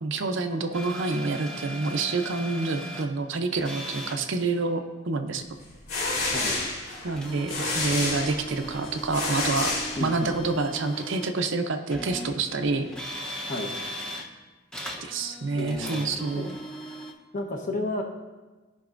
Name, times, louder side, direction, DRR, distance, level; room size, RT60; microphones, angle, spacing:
voice 1, 0.0-5.4 7.0-9.7 10.0-12.9 15.0-16.5, right 3 dB, 60° right, 6 dB, 0.6 m, -28 dB
sound 1, 0.7-3.1 3.5-4.2 7.1-11.4 11.9-14.3 14.7-17.1, equal, 5° left, 0.8 m, -38 dB
sound 2, 5.6-10.5, left 2 dB, 85° left, 2.7 m, -30 dB
voice 2, 6.3-6.6 10.0-10.4 13.4-13.7 15.6-16.1 16.4-16.5 17.3-18.0, left 2 dB, 40° left, 0 dB, 1.0 m, -32 dB
15.0 x 5.3 x 2.5 m, 1.3 s
head